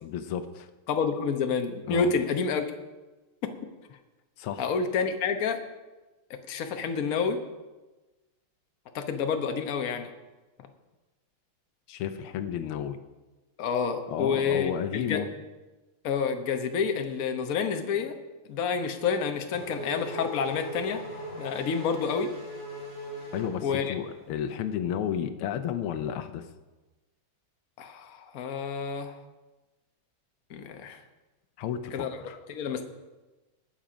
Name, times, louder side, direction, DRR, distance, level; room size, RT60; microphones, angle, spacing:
voice 1, 0.0-0.7 1.9-2.1 4.4-4.7 11.9-13.0 14.1-15.3 23.3-26.4 31.6-32.4, left 9 dB, 90° left, 10 dB, 1.7 m, -32 dB
voice 2, 0.9-2.6 4.6-5.6 6.3-7.4 8.9-10.1 13.6-15.2 16.0-18.1 18.5-21.0 21.4-22.3 23.6-23.9 27.8-29.2 30.5-31.0 31.9-32.2 32.5-32.8, left 6 dB, 50° left, 6 dB, 1.3 m, -29 dB
Race car auto racing / Accelerating revving vroom, 18.9-24.2, left 1 dB, 25° left, 4.5 m, -40 dB
19.0 x 7.4 x 5.1 m, 1.2 s
omnidirectional pair, 2.3 m